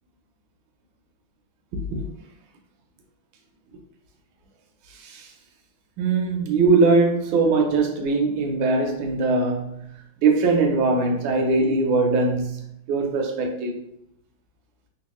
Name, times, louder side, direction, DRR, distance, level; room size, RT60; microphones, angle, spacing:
voice 1, 1.7-2.1 4.9-5.3 6.0-9.8 10.2-13.7, right 3 dB, 75° right, 1.3 m, -21 dB
3.7 x 2.4 x 2.9 m
omnidirectional pair, 2.3 m